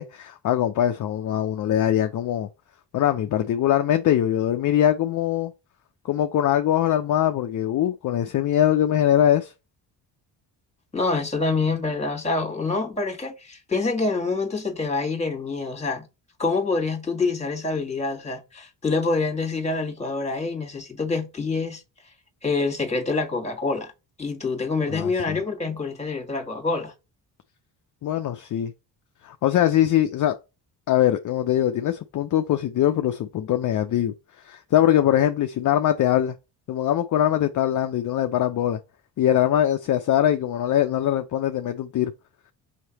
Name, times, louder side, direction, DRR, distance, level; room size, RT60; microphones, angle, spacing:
voice 1, 0.0-2.5 2.9-5.5 6.0-9.5 24.9-25.4 28.0-28.7 29.2-30.3 30.9-34.1 34.4-36.4 36.7-38.8 39.2-42.1, left 11 dB, 45° left, 0.5 m, -22 dB
voice 2, 10.9-16.1 16.4-21.8 22.4-23.9 24.2-26.9, left 3 dB, 15° left, 1.5 m, -26 dB
5.7 x 3.1 x 2.9 m
supercardioid pair, 70°, 43 cm